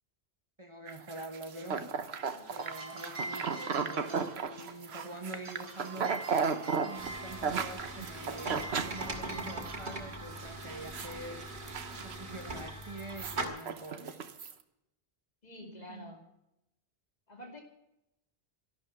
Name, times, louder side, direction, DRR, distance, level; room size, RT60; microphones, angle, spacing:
voice 1, 0.6-1.9 2.5-6.2 6.8-11.5 11.9-14.2 15.6-16.1, right 1 dB, 30° right, 5 dB, 1.1 m, -45 dB
sound 1, 0.9-9.8 10.1-10.4 10.6-11.2 11.5-12.5 12.8-14.5, right 6 dB, 70° right, 1.2 m, -35 dB
sound 2, 2.3-12.7, right 2 dB, 55° right, 4.0 m, -47 dB
sound 3, 7.0-13.4, right 2 dB, 90° right, 2.5 m, -41 dB
voice 2, 15.4-16.2 17.3-17.6, left 1 dB, 40° left, 2 dB, 2.7 m, -48 dB
13.0 x 12.0 x 8.5 m, 0.87 s
omnidirectional pair, 1.1 m